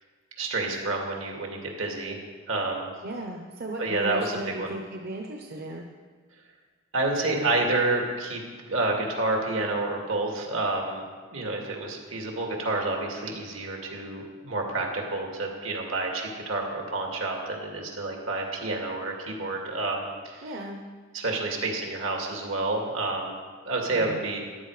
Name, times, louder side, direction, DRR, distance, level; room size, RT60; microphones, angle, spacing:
voice 1, 0.4-2.2 2.5-2.9 3.8-4.7 6.9-8.4 8.7-11.0 11.3-20.6 21.1-23.4 23.6-24.4, right 2 dB, 75° right, 1 dB, 2.5 m, -29 dB
voice 2, 3.0-5.9 20.4-20.8 23.9-24.2, right 1 dB, 50° right, 1 dB, 0.9 m, -36 dB
14.0 x 11.0 x 5.0 m, 1.5 s
head